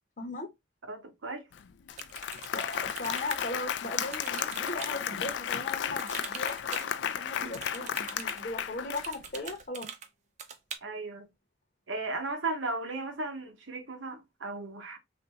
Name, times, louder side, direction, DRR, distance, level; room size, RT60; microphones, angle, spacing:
voice 1, 0.2-0.5 2.4-9.9, left 2 dB, 45° left, 0.8 m, -38 dB
voice 2, 0.9-1.4 10.8-11.3 11.9-15.0, right 3 dB, 85° right, 0.8 m, -36 dB
Applause, 1.5-1.6 1.9-9.4, left 9 dB, 70° left, 0.3 m, -34 dB
sound 1, 1.9-3.4 4.0-4.9 6.0-6.9 7.5-8.4 9.0-10.1 10.4-10.8, right 6 dB, 40° right, 0.5 m, -43 dB
3.4 x 2.5 x 2.8 m
head